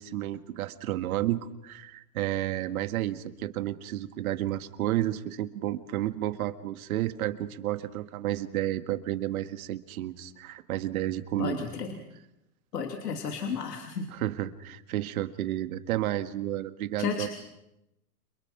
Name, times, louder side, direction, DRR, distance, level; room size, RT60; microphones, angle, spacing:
voice 1, 0.0-11.6 14.1-17.3, right 13 dB, 60° right, 11 dB, 1.8 m, -31 dB
voice 2, 11.4-11.9 12.7-14.1 17.0-17.3, left 6 dB, 90° left, 4 dB, 3.0 m, -32 dB
30.0 x 23.0 x 6.0 m, 0.87 s
hypercardioid pair, 125°, 47 cm